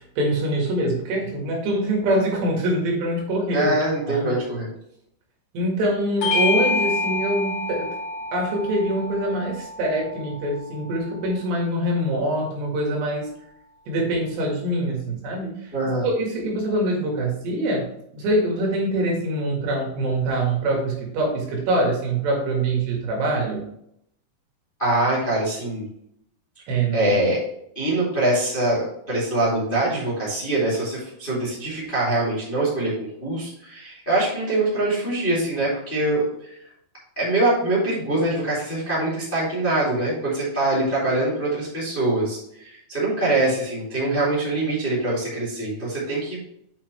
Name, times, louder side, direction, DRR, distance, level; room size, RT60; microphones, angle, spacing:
voice 1, 0.2-3.7 4.1-4.4 5.5-7.9 8.3-13.3 13.9-15.5 16.0-17.9 18.1-23.6 26.7-27.1, right 1 dB, 70° right, -1 dB, 3.8 m, -24 dB
voice 2, 3.5-4.7 15.7-16.1 24.8-25.8 26.9-27.4 27.7-36.6 37.2-46.4, right 2 dB, 15° left, -7 dB, 1.9 m, -23 dB
Bell / Doorbell, 6.2-11.0, left 3 dB, 75° left, 2.2 m, -27 dB
8.3 x 5.8 x 3.2 m, 0.73 s
omnidirectional pair, 5.4 m